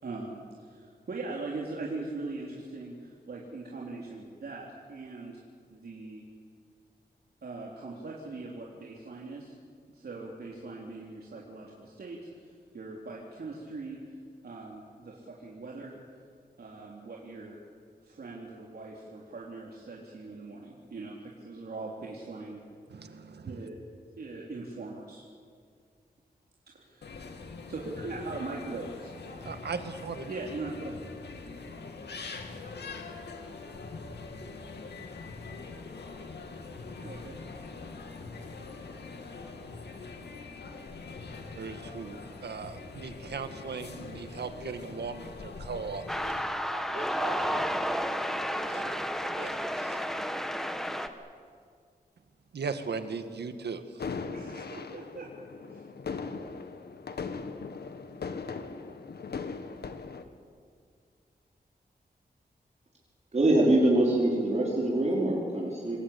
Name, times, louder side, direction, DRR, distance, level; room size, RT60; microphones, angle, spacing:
voice 1, 0.0-5.4 5.7-6.2 7.4-9.5 9.9-14.0 14.4-15.9 16.6-17.6 18.0-22.6 23.4-23.8 24.2-25.2 26.7-27.0 27.7-29.1 30.3-31.0 37.0-37.4 54.3-55.3 55.7-55.9, right 3 dB, 70° right, -3 dB, 3.5 m, -41 dB
voice 2, 22.9-23.7 29.4-30.3 41.6-46.3 46.7-48.0 48.7-50.0 52.5-54.0, right 5 dB, 85° right, 8 dB, 1.9 m, -39 dB
sound 1, 27.0-46.4, left 4 dB, 90° left, 2.6 m, -43 dB
sound 2, 46.1-51.1, equal, ahead, 1.6 m, -31 dB
sound 3, 54.0-60.2, left 5 dB, 75° left, 1.7 m, -39 dB
voice 3, 63.3-66.0, right 1 dB, 40° right, -3 dB, 4.6 m, -24 dB
27.0 x 21.5 x 8.7 m, 2.1 s
wide cardioid pair, 105°, 17 cm